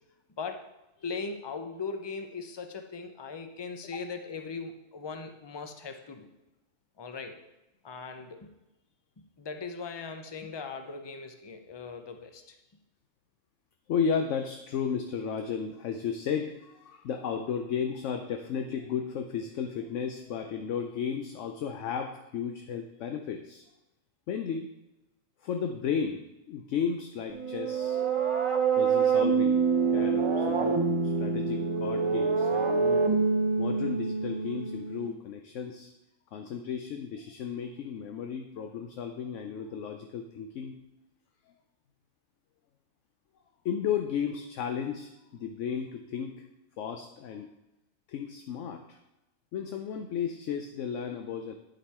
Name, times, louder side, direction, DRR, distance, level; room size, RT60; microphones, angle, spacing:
voice 1, 0.4-0.7 1.0-6.3 7.0-7.4 7.8-8.5 9.4-12.6, left 4 dB, 30° left, 6 dB, 0.5 m, -39 dB
voice 2, 13.9-23.6 24.3-24.7 25.4-28.0 28.7-29.7 29.9-33.1 33.6-35.9 36.3-40.7 43.6-46.5 46.8-47.5 48.1-49.0 49.5-51.5, left 7 dB, 70° left, 5 dB, 0.9 m, -34 dB
sound 1, 27.3-35.1, right 5 dB, 35° right, 0.5 m, -26 dB
9.7 x 5.3 x 4.2 m, 0.97 s
omnidirectional pair, 1.3 m